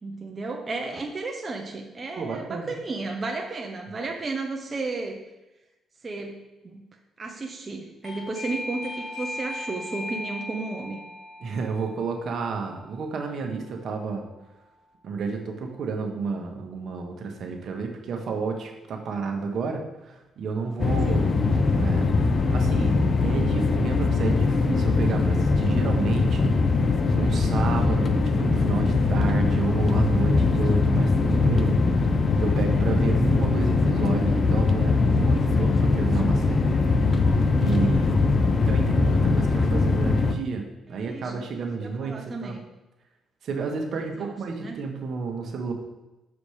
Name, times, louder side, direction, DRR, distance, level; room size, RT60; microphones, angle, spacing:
voice 1, 0.0-5.2 6.0-6.8 7.2-11.0 21.0-21.3 31.0-31.5 40.9-41.3 41.8-42.6 44.0-44.8, right 3 dB, 30° right, 0 dB, 0.9 m, -33 dB
voice 2, 2.2-2.8 11.4-14.2 15.0-21.3 21.7-22.9 23.2-32.1 32.4-37.1 37.6-42.6 43.4-45.7, right 4 dB, 65° right, 3 dB, 1.4 m, -31 dB
Doorbell, 8.0-14.5, left 1 dB, 70° left, 2.9 m, -39 dB
sound 1, 20.8-40.3, left 3 dB, 40° left, 0.7 m, -21 dB
7.0 x 5.0 x 5.0 m, 1.0 s
cardioid pair, 90°, 0 cm